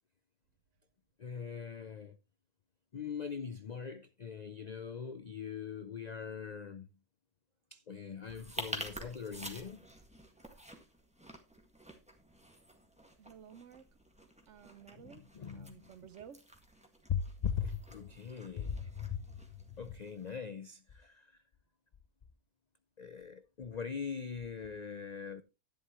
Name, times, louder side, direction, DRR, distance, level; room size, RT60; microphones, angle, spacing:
voice 1, 1.2-2.2 2.9-6.9 7.7-9.8 14.9-15.9 17.1-19.2 19.8-21.3 23.0-25.4, left 7 dB, 85° left, 0.3 m, -40 dB
sound 1, 8.2-20.4, equal, 5° right, 1.7 m, -49 dB
voice 2, 13.2-13.9 14.5-16.5, right 8 dB, 60° right, 1.0 m, -54 dB
11.0 x 10.5 x 3.0 m
omnidirectional pair, 1.6 m